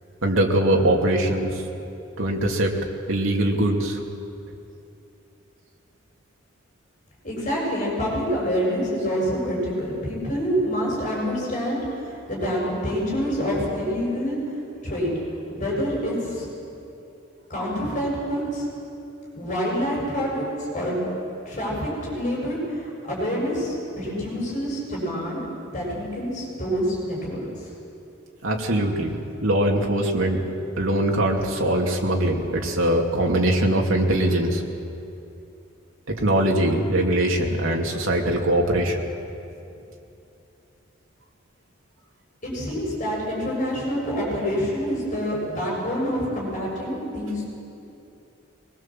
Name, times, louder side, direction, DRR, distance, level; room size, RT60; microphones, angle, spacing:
voice 1, 0.2-1.6 2.2-2.7 3.1-4.0 28.4-30.4 30.8-34.6 36.1-39.0, right 1 dB, 85° right, 0 dB, 2.7 m, -22 dB
voice 2, 7.2-14.4 14.8-15.1 15.5-16.5 17.5-18.7 19.3-21.0 21.4-25.4 25.7-27.4 42.4-47.4, equal, 40° left, -3 dB, 6.9 m, -27 dB
23.0 x 20.5 x 7.5 m, 2.8 s
head